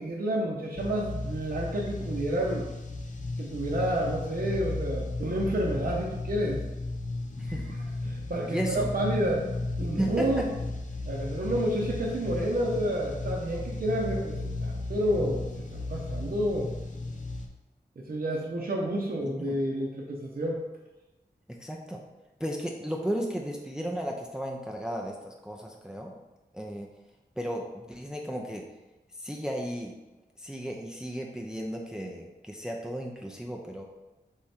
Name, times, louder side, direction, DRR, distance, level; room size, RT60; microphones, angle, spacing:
voice 1, 0.0-2.6 3.4-6.6 8.0-9.4 9.8-10.5 11.1-16.7 18.0-20.6, right 1 dB, 55° right, -3 dB, 0.8 m, -30 dB
sound 1, 0.8-17.5, left 2 dB, 45° left, 0.6 m, -35 dB
voice 2, 7.4-7.7 8.5-8.9 10.0-10.3 19.2-19.5 21.5-22.0 22.4-26.1 26.5-26.9 27.4-28.6 29.2-29.9 30.4-33.8, equal, 5° right, 1 dB, 0.5 m, -34 dB
3.6 x 3.3 x 4.3 m, 1.1 s
cardioid pair, 50°, 17 cm